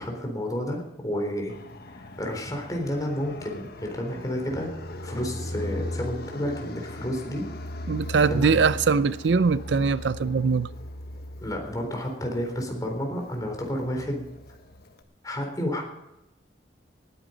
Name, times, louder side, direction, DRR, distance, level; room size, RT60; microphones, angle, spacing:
voice 1, 0.0-1.5 2.0-4.7 5.0-7.5 8.3-8.5 11.4-14.3 15.2-15.8, equal, 20° left, 3.8 m, -31 dB
Fixed-wing aircraft airplane, 1.5-15.0, left 1 dB, 60° left, 1.4 m, -38 dB
voice 2, 7.9-10.7, right 5 dB, 75° right, 0.5 m, -22 dB
19.0 x 10.0 x 5.2 m
head